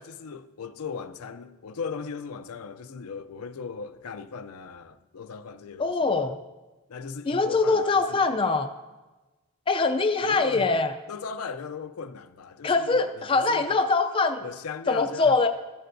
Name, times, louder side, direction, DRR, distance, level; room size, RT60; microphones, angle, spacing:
voice 1, 0.0-6.2 6.9-8.3 10.2-10.8 11.1-13.8 14.4-15.5, left 5 dB, 80° left, 0.5 m, -38 dB
voice 2, 5.8-6.4 7.3-8.7 9.7-10.9 12.6-14.4 14.9-15.5, left 3 dB, 25° left, 0.3 m, -23 dB
14.0 x 11.0 x 2.6 m
head